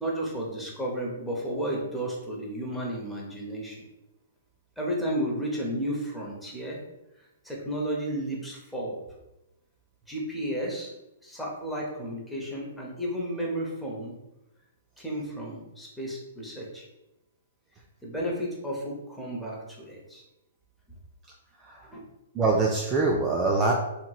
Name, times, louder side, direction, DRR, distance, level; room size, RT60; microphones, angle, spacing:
voice 1, 0.0-3.9 4.8-6.8 7.4-9.0 10.1-10.9 11.2-14.1 15.0-16.8 18.0-20.2 21.9-22.0, right 1 dB, 5° left, -4 dB, 0.7 m, -33 dB
voice 2, 22.3-23.7, right 3 dB, 20° right, -1 dB, 0.3 m, -24 dB
2.8 x 2.8 x 2.3 m, 0.95 s
hypercardioid pair, 140°, 0 cm